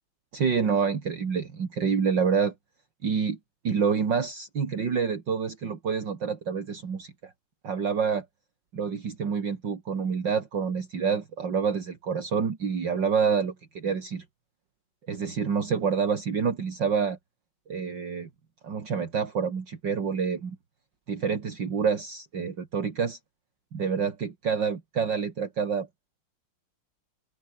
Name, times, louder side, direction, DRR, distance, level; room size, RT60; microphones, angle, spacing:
voice 1, 0.3-2.5 3.0-3.4 3.6-7.3 7.6-8.3 8.7-14.2 15.1-17.2 17.7-18.3 18.6-20.6 21.1-23.2 23.7-25.9, right 6 dB, 55° right, 3.0 m, -27 dB
open air
omnidirectional pair, 2.4 m